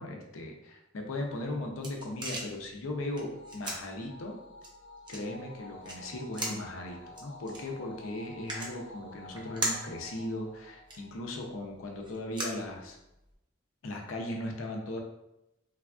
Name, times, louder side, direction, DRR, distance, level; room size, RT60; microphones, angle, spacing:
voice 1, 0.0-4.4 5.1-13.0 13.8-15.0, left 1 dB, 75° left, 1 dB, 0.5 m, -38 dB
sound 1, 1.3-13.3, right 2 dB, 25° right, 0.5 m, -41 dB
sound 2, 3.3-11.9, left 1 dB, 35° left, 0.7 m, -50 dB
3.3 x 2.3 x 2.3 m, 0.88 s
head